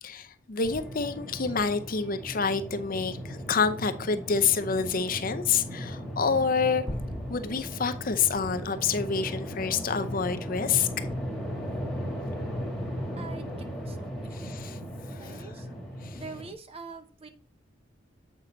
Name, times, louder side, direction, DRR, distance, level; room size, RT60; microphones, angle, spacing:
voice 1, 0.0-6.8 7.3-10.9 14.3-14.8 15.1-15.4 16.0-16.2, left 5 dB, 45° left, 0.7 m, -28 dB
sound 1, 0.6-16.5, equal, ahead, 1.8 m, -37 dB
sound 2, 6.9-9.4, equal, 25° left, 1.3 m, -40 dB
voice 2, 13.2-13.5 13.9-14.0 15.2-15.7 16.1-17.3, right 4 dB, 30° right, 0.8 m, -43 dB
8.4 x 5.5 x 3.9 m
head